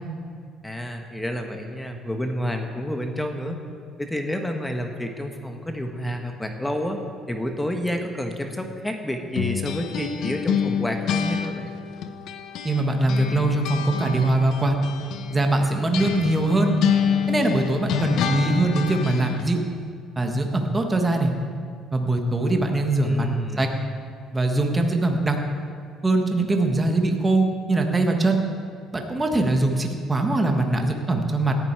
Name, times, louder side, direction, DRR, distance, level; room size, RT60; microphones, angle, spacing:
voice 1, 0.6-3.6 4.0-7.0 7.3-11.7 23.0-23.7, equal, 10° left, 4 dB, 1.2 m, -29 dB
sound 1, 9.4-12.8 13.1-19.5, left 7 dB, 65° left, 0.8 m, -27 dB
voice 2, 12.6-14.8 15.3-16.7 17.3-19.6 20.2-21.3 21.9-23.3 23.6-23.7 24.3-25.4 26.0-28.4 28.9-31.6, right 2 dB, 15° right, 3 dB, 1.5 m, -22 dB
17.5 x 11.0 x 4.7 m, 2.2 s
cardioid pair, 115°, 0 cm